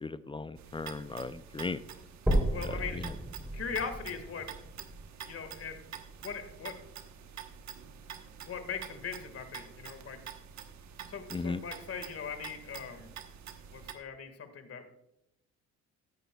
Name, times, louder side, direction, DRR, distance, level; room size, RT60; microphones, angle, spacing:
voice 1, 0.0-1.8 2.6-3.1 11.3-11.6, left 3 dB, 15° left, 14 dB, 0.4 m, -37 dB
sound 1, 0.6-13.9, right 8 dB, 65° right, 1.1 m, -47 dB
sound 2, 2.3-6.3 6.8-6.9 7.5-7.6 7.9-8.0 8.9-9.0, right 1 dB, 5° right, 3.2 m, -34 dB
voice 2, 2.5-3.0 3.5-4.5 5.2-5.8 6.2-6.8 8.4-10.2 11.1-13.1 13.7-14.9, left 6 dB, 50° left, 8 dB, 1.8 m, -40 dB
14.5 x 10.0 x 2.3 m, 0.83 s
cardioid pair, 90°, 30 cm